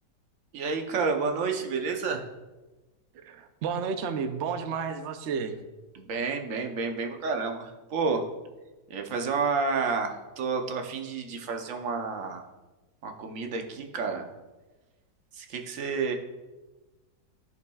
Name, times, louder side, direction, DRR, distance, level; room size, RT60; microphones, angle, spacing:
voice 1, 0.5-2.3 5.9-8.2 8.9-12.4 13.0-14.3 15.4-16.1, right 4 dB, 55° right, 4 dB, 1.1 m, -30 dB
voice 2, 3.1-5.6, right 6 dB, 75° right, 8 dB, 0.6 m, -32 dB
14.5 x 5.7 x 2.3 m, 1.2 s
omnidirectional pair, 1.9 m